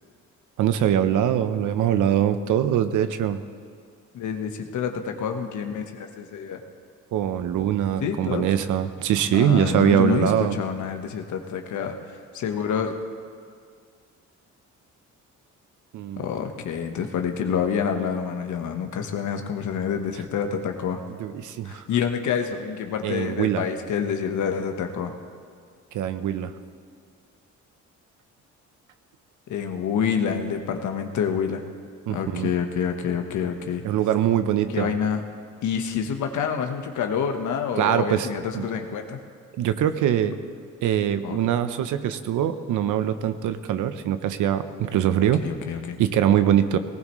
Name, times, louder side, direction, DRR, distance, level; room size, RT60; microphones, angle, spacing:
voice 1, 0.6-3.4 7.1-10.6 15.9-16.3 21.2-21.8 23.0-23.6 25.9-26.5 32.1-32.5 33.8-34.9 37.8-38.3 38.5-38.6 39.6-40.3 40.8-45.5 46.0-46.8, right 10 dB, 80° right, 10 dB, 0.9 m, -23 dB
voice 2, 4.1-6.6 8.0-8.5 9.3-13.0 16.2-21.0 21.6-25.1 29.5-31.6 32.1-33.8 34.7-35.2 35.6-39.2 41.2-41.4 45.4-46.0, left 7 dB, 75° left, 5 dB, 1.3 m, -27 dB
19.0 x 18.5 x 3.2 m, 2.2 s
cardioid pair, 90°, 30 cm